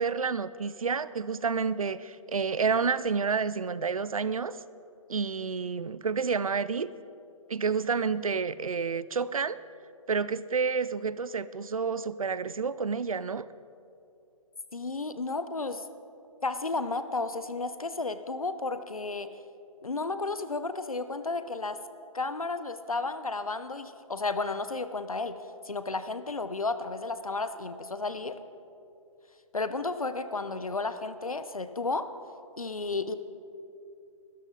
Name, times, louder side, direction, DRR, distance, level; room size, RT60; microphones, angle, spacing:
voice 1, 0.0-4.6 5.1-6.9 7.5-9.6 10.1-13.5, right 5 dB, 80° right, 16 dB, 0.6 m, -29 dB
voice 2, 14.7-15.8 16.4-19.3 19.8-21.8 22.1-25.4 25.6-28.4 29.5-32.1 32.6-33.1, left 3 dB, 90° left, 11 dB, 0.9 m, -32 dB
21.0 x 13.5 x 4.0 m, 2.6 s
figure-of-eight pair, 135°, 18 cm